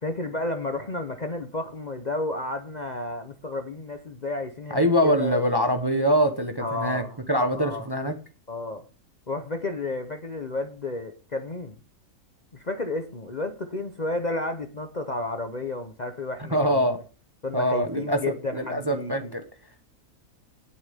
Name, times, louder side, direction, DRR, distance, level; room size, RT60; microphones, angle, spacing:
voice 1, 0.0-5.4 6.6-7.2 7.5-7.9 8.5-8.8 9.3-11.7 12.5-17.0 17.4-19.3, left 2 dB, 35° left, 7 dB, 0.8 m, -32 dB
voice 2, 4.7-7.0 7.3-8.1 16.5-17.0 17.5-19.4, equal, 20° right, 6 dB, 0.9 m, -24 dB
17.5 x 7.0 x 3.5 m, 0.34 s
omnidirectional pair, 1.5 m